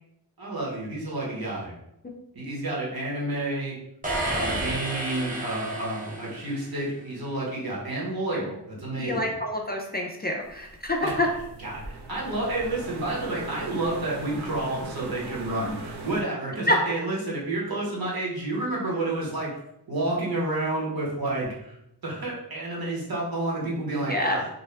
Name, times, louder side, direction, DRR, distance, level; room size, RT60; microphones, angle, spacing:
voice 1, 0.4-1.8 2.3-3.8 4.3-9.3 11.0-11.3 11.6-19.5 19.9-21.8 22.0-24.5, right 2 dB, 60° right, -5 dB, 1.1 m, -30 dB
sound 1, 4.0-6.9, right 1 dB, 20° right, 0.6 m, -31 dB
voice 2, 9.0-11.3 16.7-16.8 24.1-24.4, left 1 dB, 25° left, 0 dB, 0.3 m, -26 dB
sound 2, 10.4-16.2, right 3 dB, 80° right, 0.5 m, -39 dB
2.6 x 2.2 x 3.2 m, 0.81 s
wide cardioid pair, 65°, 40 cm